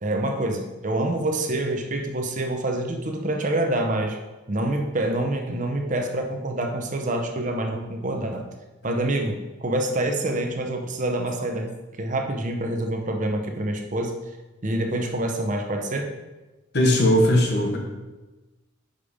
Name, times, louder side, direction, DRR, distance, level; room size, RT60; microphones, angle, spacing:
voice 1, 0.0-4.2 4.5-8.5 8.8-11.7 11.9-14.1 14.6-16.1, right 1 dB, 35° right, 3 dB, 0.7 m, -26 dB
voice 2, 16.7-17.8, left 1 dB, 55° left, 1 dB, 1.1 m, -18 dB
5.6 x 5.2 x 5.0 m, 1.1 s
head